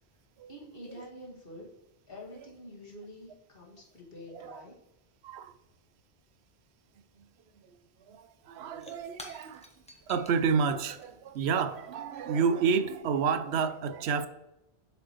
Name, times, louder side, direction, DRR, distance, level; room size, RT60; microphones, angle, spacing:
voice 1, 0.5-1.7 2.1-4.8, left 1 dB, 60° left, 1.9 m, -47 dB
voice 2, 4.3-4.6 5.2-5.5 8.1-9.7 10.1-14.3, right 6 dB, 80° right, 0.8 m, -30 dB
Shatter / Crushing, 7.8-7.9 8.1-13.0, left 1 dB, 5° left, 0.9 m, -53 dB
7.7 x 5.0 x 3.0 m
omnidirectional pair, 1.1 m